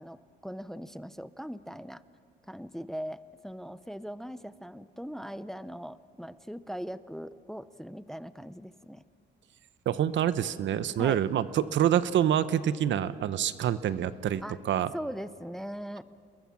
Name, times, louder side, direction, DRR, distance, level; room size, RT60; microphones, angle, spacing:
voice 1, 0.0-2.0 2.5-9.0 11.0-11.2 14.4-14.6 14.9-16.0, equal, ahead, 15 dB, 0.6 m, -40 dB
voice 2, 9.9-14.9, right 10 dB, 70° right, 15 dB, 0.9 m, -27 dB
28.0 x 21.5 x 6.0 m, 2.5 s
cardioid pair, 90°, 20 cm